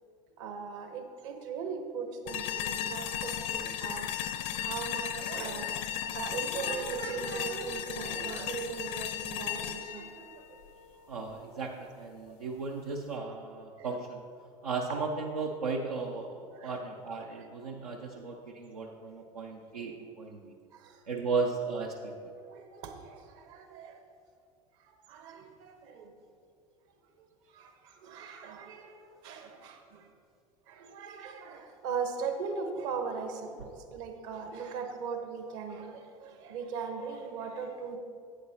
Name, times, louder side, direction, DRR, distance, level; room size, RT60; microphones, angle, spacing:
voice 1, 0.4-4.1 4.6-5.7 6.1-10.3 12.2-12.4 13.8-14.0 14.9-15.0 16.5-16.8 17.3-17.4 20.7-20.9 22.5-24.0 25.1-26.1 27.5-28.9 29.2-30.0 30.7-38.0, right 5 dB, 60° right, 6 dB, 1.1 m, -39 dB
sound 1, 2.3-11.3, left 11 dB, 55° left, 0.6 m, -36 dB
voice 2, 11.1-14.2 14.6-20.5 21.1-21.9, right 4 dB, 80° right, 0 dB, 0.6 m, -35 dB
11.5 x 8.6 x 2.9 m, 2.4 s
figure-of-eight pair, 70°, 19 cm